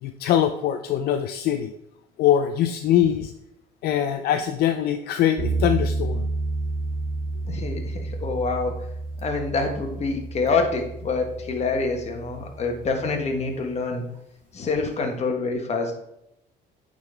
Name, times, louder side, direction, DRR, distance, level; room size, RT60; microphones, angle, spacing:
voice 1, 0.0-1.7 2.2-3.3 3.8-6.3, left 10 dB, 70° left, 7 dB, 0.5 m, -22 dB
sound 1, 5.4-13.5, right 3 dB, 50° right, 1.4 m, -31 dB
voice 2, 7.5-8.7 9.2-14.0 14.5-15.9, left 3 dB, 40° left, 4 dB, 1.3 m, -26 dB
8.8 x 3.9 x 3.3 m, 0.83 s
cardioid pair, 110°, 17 cm